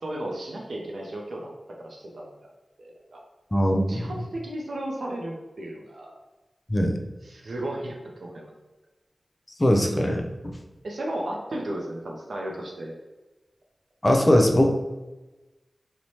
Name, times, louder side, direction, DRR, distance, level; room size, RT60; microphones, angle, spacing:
voice 1, 0.0-2.5 2.8-3.2 3.9-6.2 7.2-8.5 10.8-12.9, right 1 dB, 75° right, -1 dB, 0.4 m, -34 dB
voice 2, 3.5-4.1 6.7-7.0 9.6-10.5 14.0-14.7, equal, 30° left, 4 dB, 0.4 m, -21 dB
3.0 x 2.0 x 2.7 m, 1.1 s
cardioid pair, 45°, 0 cm